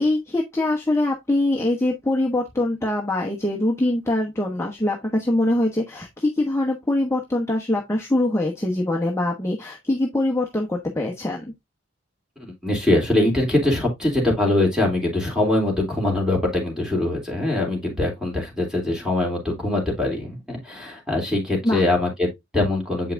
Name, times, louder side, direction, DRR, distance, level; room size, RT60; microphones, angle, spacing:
voice 1, 0.0-11.5 21.6-21.8, left 1 dB, 15° left, 1.1 m, -23 dB
voice 2, 12.4-23.1, left 2 dB, 5° right, 3.2 m, -23 dB
8.0 x 5.6 x 2.6 m
head